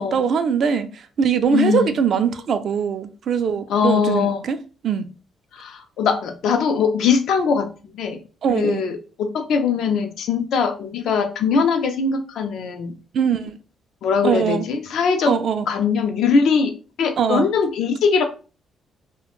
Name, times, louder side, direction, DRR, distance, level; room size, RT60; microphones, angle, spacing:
voice 1, 0.0-4.6 4.8-5.1 8.4-8.8 13.1-13.6 14.2-14.7 15.3-15.7 17.2-17.5, right 7 dB, 60° right, 0.3 m, -21 dB
voice 2, 1.5-1.9 3.7-4.4 5.5-7.7 7.9-8.2 8.5-12.9 14.0-15.4 15.7-16.7 17.0-18.2, left 5 dB, 75° left, 0.4 m, -21 dB
2.4 x 2.1 x 3.0 m
cardioid pair, 90°, 0 cm